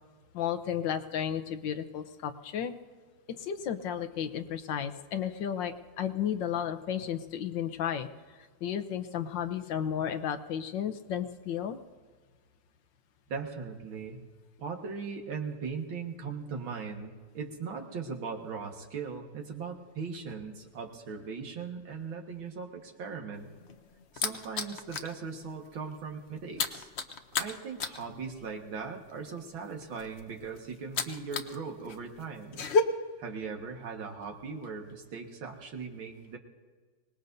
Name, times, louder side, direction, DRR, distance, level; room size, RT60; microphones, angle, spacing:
voice 1, 0.3-2.7 3.3-8.1 8.6-11.8, left 9 dB, 70° left, 8 dB, 1.4 m, -33 dB
voice 2, 13.3-14.2 14.6-23.5 24.1-26.9 27.4-32.7 33.2-36.4, right 5 dB, 80° right, 2 dB, 2.4 m, -39 dB
sound 1, 23.4-25.2 25.5-25.7 26.0-31.6 31.8-32.8, left 4 dB, 55° left, 0.7 m, -32 dB
24.5 x 19.5 x 2.7 m, 1.5 s
omnidirectional pair, 2.2 m